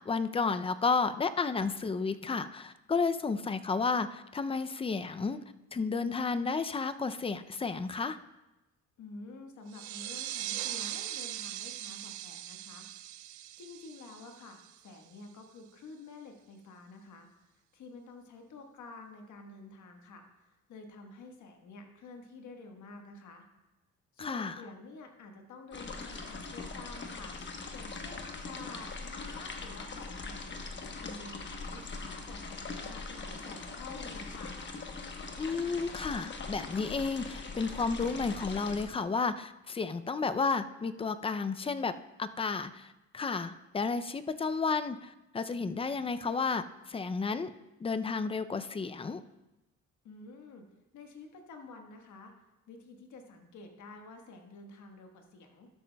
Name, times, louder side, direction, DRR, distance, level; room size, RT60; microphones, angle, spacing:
voice 1, 0.0-5.4 5.7-8.2 24.2-24.5 35.4-41.9 42.2-42.9 43.1-45.1 45.3-47.5 47.8-49.2, left 4 dB, 20° left, 12 dB, 0.4 m, -32 dB
voice 2, 9.0-12.8 13.6-17.3 17.7-20.3 20.7-23.4 24.1-27.3 27.7-30.6 31.0-34.6 50.0-50.6 50.9-52.3 52.7-55.7, left 3 dB, 75° left, 4 dB, 1.4 m, -49 dB
sound 1, 9.7-15.0, right 13 dB, 75° right, 0.4 m, -40 dB
sound 2, 25.7-38.9, left 3 dB, 40° left, 1.1 m, -41 dB
12.5 x 8.6 x 2.3 m, 0.99 s
cardioid pair, 90°, 30 cm